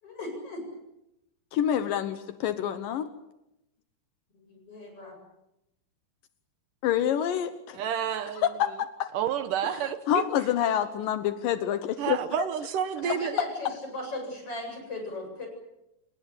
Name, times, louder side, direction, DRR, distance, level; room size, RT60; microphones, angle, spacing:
voice 1, 0.0-0.6 4.5-5.2 13.0-13.7 13.9-15.5, left 1 dB, 40° left, 2 dB, 9.1 m, -37 dB
voice 2, 1.5-3.1 6.8-7.8 8.4-9.1 9.6-9.7 10.1-12.2, left 10 dB, 80° left, 10 dB, 2.8 m, -27 dB
voice 3, 7.7-8.4 9.1-10.2 12.0-13.4, right 9 dB, 70° right, 11 dB, 2.7 m, -29 dB
29.0 x 19.0 x 8.5 m, 0.88 s
omnidirectional pair, 3.9 m